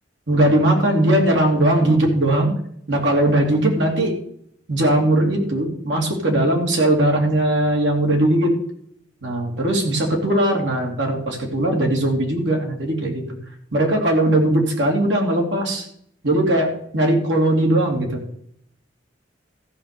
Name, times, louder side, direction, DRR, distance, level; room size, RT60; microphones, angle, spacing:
voice 1, 0.3-2.5 2.9-4.1 4.7-8.6 9.2-13.2 13.7-15.8 16.2-18.2, right 1 dB, 70° right, 1 dB, 2.9 m, -19 dB
14.5 x 5.2 x 6.8 m, 0.69 s
head